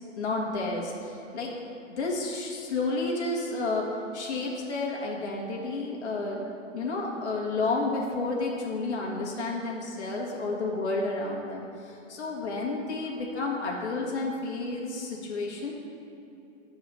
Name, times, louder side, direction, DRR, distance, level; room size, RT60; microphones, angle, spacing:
voice 1, 0.2-1.5 1.9-6.4 6.7-15.7, left 3 dB, 60° left, -3 dB, 1.7 m, -31 dB
6.8 x 4.6 x 6.3 m, 3.0 s
hypercardioid pair, 145°, 39 cm